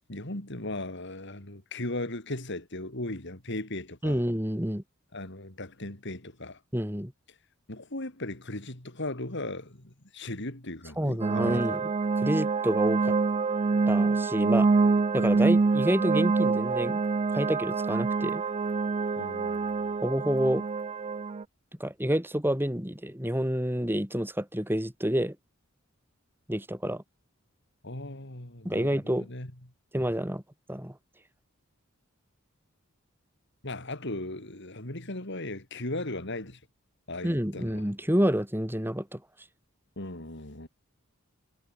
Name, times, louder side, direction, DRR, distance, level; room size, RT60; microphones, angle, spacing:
voice 1, 0.1-4.2 5.1-6.6 7.7-11.8 19.2-19.9 27.8-29.5 33.6-36.6 37.1-37.9 40.0-40.7, left 2 dB, 60° left, 3.9 m, -37 dB
voice 2, 4.0-4.8 6.7-7.1 11.0-11.8 12.2-13.2 13.9-14.7 15.1-17.0 17.3-18.4 20.0-20.6 21.8-25.4 26.5-27.0 28.6-29.3 29.9-30.4 30.7-31.0 37.2-39.2, equal, 10° right, 4.5 m, -28 dB
sound 1, 11.2-21.4, right 4 dB, 30° right, 0.4 m, -26 dB
head